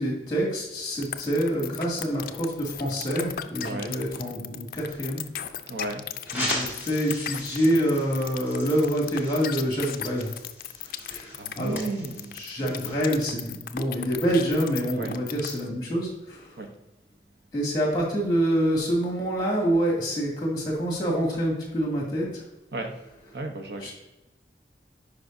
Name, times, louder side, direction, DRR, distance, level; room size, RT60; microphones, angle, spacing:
voice 1, 0.0-5.6 6.3-10.3 10.9-11.8 12.3-16.6 17.5-22.4 23.8-23.9, equal, 25° left, -3 dB, 2.3 m, -26 dB
sound 1, 1.0-15.7, left 10 dB, 50° left, 0.4 m, -36 dB
voice 2, 3.6-4.0 5.7-6.0 10.8-10.9 11.4-12.3 15.0-15.1 16.6-16.7 22.7-22.9 23.3-23.9, right 2 dB, 70° right, 4 dB, 0.9 m, -33 dB
sound 2, 6.3-13.1, left 1 dB, 10° right, 1.8 m, -38 dB
10.5 x 4.9 x 2.6 m, 1.0 s
head